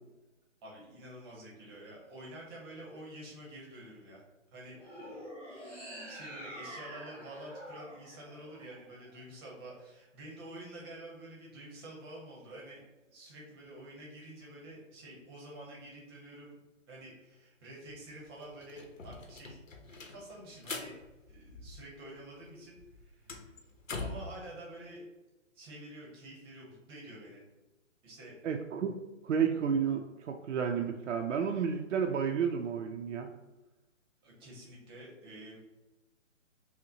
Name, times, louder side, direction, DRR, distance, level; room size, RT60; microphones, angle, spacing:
voice 1, 0.6-4.2 4.5-5.2 6.1-12.8 13.1-16.5 16.9-19.6 19.9-20.9 21.3-23.5 24.0-25.0 25.5-27.4 28.0-28.4 34.2-35.6, right 1 dB, 20° right, -3 dB, 0.8 m, -48 dB
sound 1, 4.8-9.1, equal, 5° left, 1.2 m, -46 dB
sound 2, 17.9-18.0 18.2-22.2 22.4-24.4, left 3 dB, 90° left, 0.8 m, -44 dB
voice 2, 28.4-28.9 29.2-33.3, right 7 dB, 70° right, 3 dB, 0.5 m, -31 dB
5.6 x 2.1 x 2.8 m, 1.1 s
hypercardioid pair, 145°, 38 cm